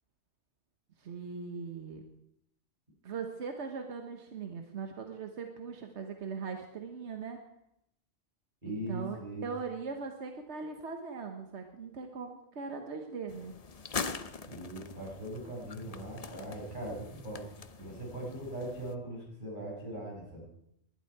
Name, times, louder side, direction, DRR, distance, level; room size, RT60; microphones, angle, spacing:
voice 1, 1.0-2.0 3.0-7.4 8.6-13.5, right 5 dB, 90° right, 5 dB, 1.4 m, -40 dB
voice 2, 8.6-9.5 14.4-17.5 17.8-20.4, right 1 dB, 45° right, -3 dB, 6.1 m, -40 dB
sound 1, 13.3-18.9, left 5 dB, 40° left, 0.7 m, -43 dB
19.5 x 11.5 x 4.7 m, 0.78 s
omnidirectional pair, 1.1 m